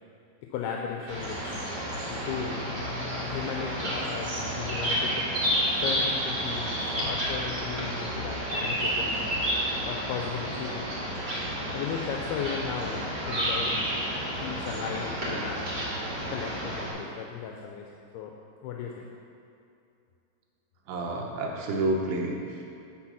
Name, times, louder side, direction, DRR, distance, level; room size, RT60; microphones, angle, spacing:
voice 1, 0.5-1.6 2.1-2.6 3.1-5.3 5.8-9.3 9.9-10.9 11.7-13.8 14.4-15.7 16.3-17.9 18.1-18.3 18.6-19.0, left 7 dB, 85° left, 1 dB, 2.6 m, -36 dB
sound 1, 1.1-16.9, equal, 35° right, 1.7 m, -30 dB
voice 2, 20.9-22.7, right 2 dB, 85° right, 0 dB, 3.0 m, -29 dB
9.9 x 4.2 x 6.1 m, 2.6 s
omnidirectional pair, 4.5 m